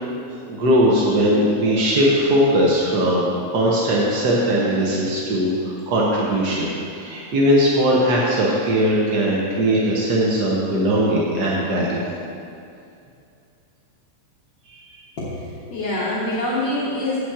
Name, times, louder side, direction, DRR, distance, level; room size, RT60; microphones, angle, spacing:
voice 1, 0.5-12.0 14.7-14.8, equal, 70° right, -4 dB, 0.9 m, -19 dB
voice 2, 15.2-17.2, left 1 dB, 50° left, -9 dB, 1.6 m, -25 dB
8.5 x 5.1 x 7.3 m, 2.5 s
omnidirectional pair, 3.3 m